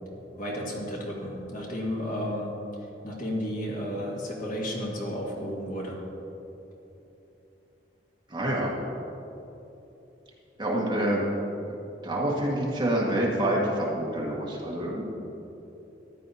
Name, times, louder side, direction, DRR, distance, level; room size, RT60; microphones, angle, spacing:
voice 1, 0.3-2.5 3.0-6.0, equal, 50° left, -3 dB, 1.9 m, -32 dB
voice 2, 8.3-8.7 10.6-11.2 11.7-11.8 12.0-15.0, right 1 dB, 25° right, -4 dB, 1.6 m, -27 dB
14.0 x 10.0 x 2.8 m, 3.0 s
head